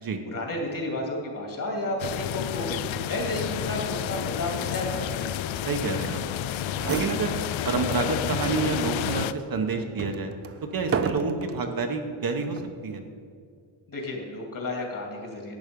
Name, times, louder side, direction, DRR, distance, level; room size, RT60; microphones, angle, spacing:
voice 1, 0.0-5.2 13.9-15.6, left 1 dB, 40° left, 1 dB, 2.6 m, -32 dB
sound 1, 2.0-9.3, left 11 dB, 75° left, 0.5 m, -30 dB
voice 2, 5.7-6.2 6.9-7.4 7.7-10.3 10.7-13.0, right 4 dB, 45° right, 4 dB, 1.0 m, -28 dB
sound 2, 6.4-6.5 6.7-7.9 8.3-8.4 9.1-11.7 12.4-12.8, right 6 dB, 30° right, 0.5 m, -33 dB
11.5 x 8.1 x 5.2 m, 2.2 s
cardioid pair, 130°, 47 cm